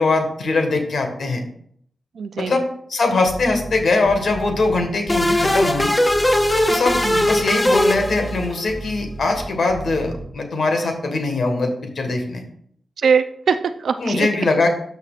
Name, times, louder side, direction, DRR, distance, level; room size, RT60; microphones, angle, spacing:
voice 1, 0.0-1.4 2.4-5.9 6.7-12.4 14.0-14.7, left 3 dB, 60° left, 4 dB, 1.5 m, -21 dB
voice 2, 2.1-2.6 7.0-7.3 13.0-14.3, right 6 dB, 75° right, 9 dB, 0.4 m, -22 dB
sound 1, 3.3-10.3, right 2 dB, 55° right, 1.2 m, -34 dB
sound 2, 5.1-8.7, left 1 dB, 15° left, 0.6 m, -19 dB
12.5 x 5.9 x 2.5 m, 0.66 s
wide cardioid pair, 130°, 0 cm